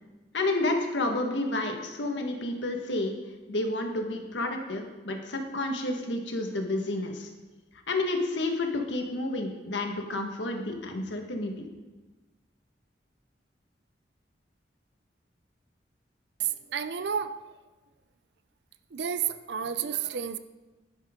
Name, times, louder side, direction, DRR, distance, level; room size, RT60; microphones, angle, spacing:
voice 1, 0.3-3.1 3.5-7.3 7.9-11.5, left 2 dB, 90° left, 3 dB, 1.6 m, -30 dB
voice 2, 16.4-17.6 18.9-20.4, right 8 dB, 70° right, 11 dB, 0.5 m, -31 dB
11.5 x 11.0 x 3.7 m, 1.2 s
head